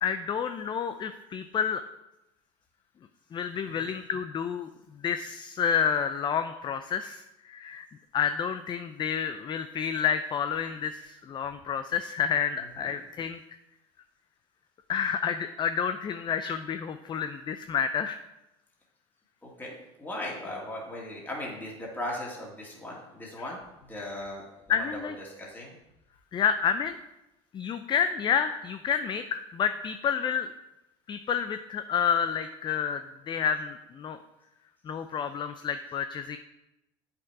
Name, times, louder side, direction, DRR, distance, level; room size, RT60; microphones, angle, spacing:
voice 1, 0.0-1.8 3.3-4.7 5.0-7.9 8.1-13.4 14.9-18.2 24.7-25.2 26.3-27.0 27.5-30.5 31.1-34.2 34.9-36.4, left 7 dB, 30° left, 10 dB, 0.5 m, -29 dB
voice 2, 19.4-25.8, left 1 dB, 10° left, -4 dB, 2.4 m, -38 dB
7.6 x 6.0 x 4.8 m, 0.93 s
hypercardioid pair, 85°, 15 cm